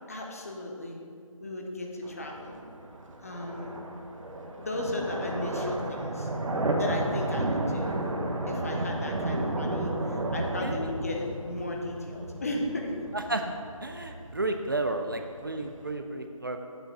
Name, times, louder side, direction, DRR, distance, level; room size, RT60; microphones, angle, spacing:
voice 1, 0.1-1.0 1.4-2.6 3.2-3.8 4.6-6.3 6.8-8.1 8.5-13.0, left 2 dB, 25° left, 0 dB, 0.6 m, -35 dB
sound 1, 2.0-15.9, right 1 dB, 65° right, 1.0 m, -33 dB
voice 2, 13.1-13.5 13.8-16.6, right 2 dB, 40° right, 5 dB, 0.4 m, -32 dB
8.1 x 3.7 x 6.5 m, 2.3 s
figure-of-eight pair, 165°, 18 cm